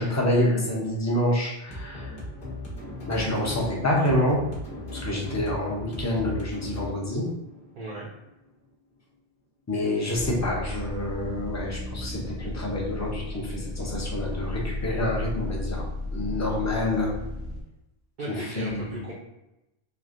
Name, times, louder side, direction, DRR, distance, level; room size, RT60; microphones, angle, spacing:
voice 1, 0.0-2.1 3.1-4.4 4.9-7.3 9.7-15.8 16.1-17.1 18.3-19.0, left 1 dB, 20° left, -3 dB, 0.5 m, -27 dB
sound 1, 1.7-8.7, left 1 dB, 60° left, 1.1 m, -38 dB
voice 2, 7.8-8.1 18.2-19.1, right 2 dB, 60° right, -5 dB, 0.7 m, -36 dB
sound 2, 10.1-17.6, left 2 dB, 90° left, 0.9 m, -34 dB
3.2 x 2.5 x 2.5 m, 0.92 s
omnidirectional pair, 1.0 m